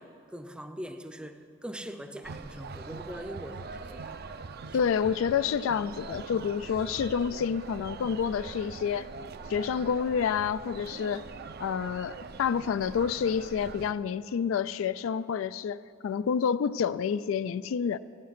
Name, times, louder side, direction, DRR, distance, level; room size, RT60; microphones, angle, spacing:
voice 1, 0.0-4.2 4.7-4.8, equal, 5° right, 0.5 m, -42 dB
sound 1, 2.2-13.9, right 4 dB, 55° right, 0.5 m, -43 dB
voice 2, 4.7-9.1 9.5-11.2 11.6-18.0, left 7 dB, 80° left, 0.3 m, -29 dB
15.5 x 9.2 x 5.9 m
head